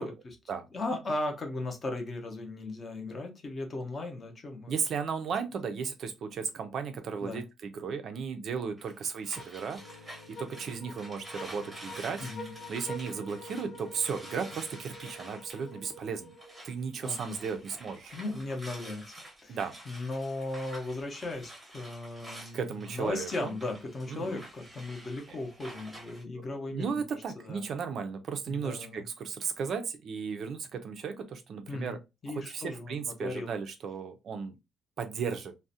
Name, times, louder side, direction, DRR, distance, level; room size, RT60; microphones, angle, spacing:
voice 1, 0.0-0.4 0.7-4.8 7.2-7.4 12.2-12.5 17.0-17.4 18.1-19.6 19.9-27.7 28.5-29.1 31.7-32.0 32.2-33.5, left 2 dB, 25° left, 0.5 m, -37 dB
voice 2, 4.7-9.8 10.4-12.2 12.7-16.3 16.6-18.1 19.5-19.7 22.5-23.5 24.1-24.4 26.3-32.0 32.3-34.6 35.0-35.5, right 6 dB, 45° right, 0.3 m, -35 dB
sound 1, 8.8-16.7 17.0-26.2, right 1 dB, 10° right, 0.7 m, -49 dB
sound 2, 9.4-16.9, equal, 65° left, 1.1 m, -47 dB
sound 3, 9.7-14.9, left 1 dB, 85° left, 0.9 m, -56 dB
2.4 x 2.0 x 2.6 m
cardioid pair, 180°, 0 cm